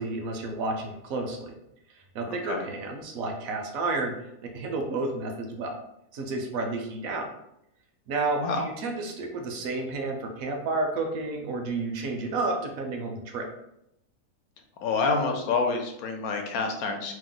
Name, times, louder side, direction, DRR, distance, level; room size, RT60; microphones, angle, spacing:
voice 1, 0.0-1.5 2.1-4.1 4.5-5.8 6.1-7.3 8.1-13.5, right 3 dB, 70° right, 3 dB, 1.0 m, -31 dB
voice 2, 2.3-2.6 8.4-8.6 14.8-17.1, left 4 dB, 75° left, 4 dB, 1.0 m, -27 dB
2.9 x 2.0 x 3.7 m, 0.82 s
omnidirectional pair, 1.6 m